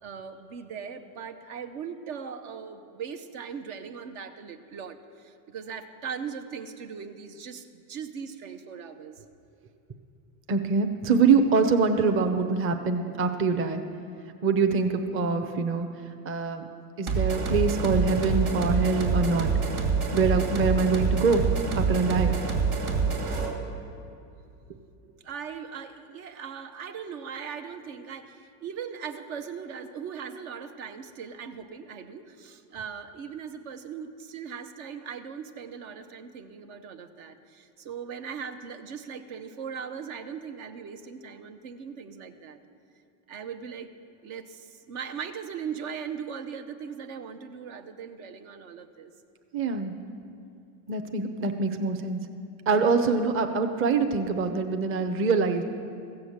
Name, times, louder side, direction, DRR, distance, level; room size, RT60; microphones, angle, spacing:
voice 1, 0.0-9.2 25.2-42.6 43.3-43.9 44.2-49.1, right 7 dB, 65° right, 7 dB, 1.0 m, -39 dB
voice 2, 10.5-13.8 14.4-15.9 16.2-16.7 17.0-19.5 20.1-21.4 21.7-22.4 49.5-49.9 50.9-52.2 52.7-55.6, right 4 dB, 30° right, 6 dB, 0.8 m, -24 dB
sound 1, 17.1-23.6, right 5 dB, 85° right, 2.5 m, -26 dB
15.0 x 7.0 x 8.0 m, 2.6 s
supercardioid pair, 120°, 44 cm